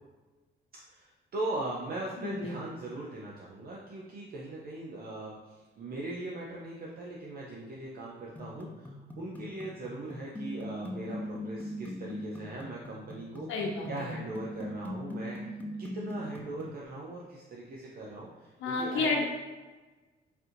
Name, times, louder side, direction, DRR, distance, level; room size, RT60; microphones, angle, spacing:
voice 1, 0.9-13.5 13.9-15.4 15.8-19.2, right 2 dB, 50° right, -4 dB, 0.5 m, -40 dB
voice 2, 2.2-2.5 13.5-14.1 18.6-19.2, left 3 dB, 80° left, 0 dB, 0.8 m, -31 dB
sound 1, 8.4-16.8, left 1 dB, 10° left, 0.3 m, -41 dB
4.2 x 2.6 x 2.5 m, 1.2 s
cardioid pair, 90°, 20 cm